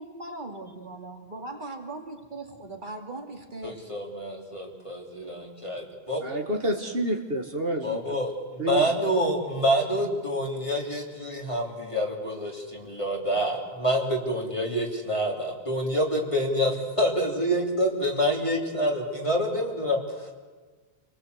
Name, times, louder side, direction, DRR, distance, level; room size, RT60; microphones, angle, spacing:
voice 1, 0.0-3.8, right 2 dB, 50° right, 4 dB, 2.7 m, -39 dB
voice 2, 3.6-6.2 7.8-20.3, equal, 30° left, -1 dB, 3.1 m, -27 dB
voice 3, 6.2-8.2 8.6-8.9, right 1 dB, 65° right, 4 dB, 2.0 m, -29 dB
28.0 x 19.5 x 8.0 m, 1.4 s
omnidirectional pair, 1.0 m